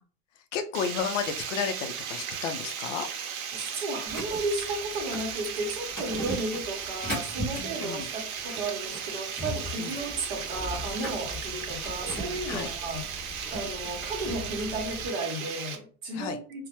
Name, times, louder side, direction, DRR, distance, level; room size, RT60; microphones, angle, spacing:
voice 1, 0.5-3.1 7.5-8.1 9.8-10.0 12.5-12.7 16.1-16.4, left 7 dB, 65° left, 0.5 m, -32 dB
Water, 0.7-15.8, right 7 dB, 85° right, 0.7 m, -36 dB
voice 2, 3.5-16.7, right 2 dB, 45° right, 0.8 m, -34 dB
sound 1, 4.1-15.1, equal, 5° left, 0.3 m, -39 dB
2.1 x 2.0 x 2.8 m
supercardioid pair, 160°, 42 cm